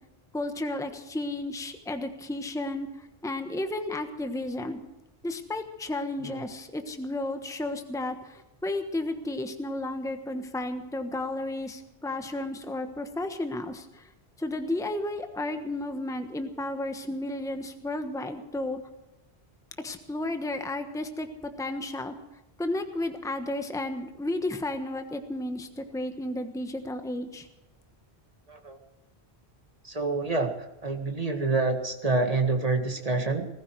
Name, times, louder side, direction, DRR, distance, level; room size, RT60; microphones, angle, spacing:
voice 1, 0.3-4.8 5.2-14.1 14.4-18.8 19.8-21.3 21.6-22.1 22.6-27.5, left 1 dB, 5° left, 7 dB, 1.2 m, -33 dB
voice 2, 29.8-30.5 30.8-33.5, right 3 dB, 35° right, 4 dB, 2.1 m, -27 dB
20.0 x 14.5 x 4.7 m, 1.0 s
omnidirectional pair, 1.1 m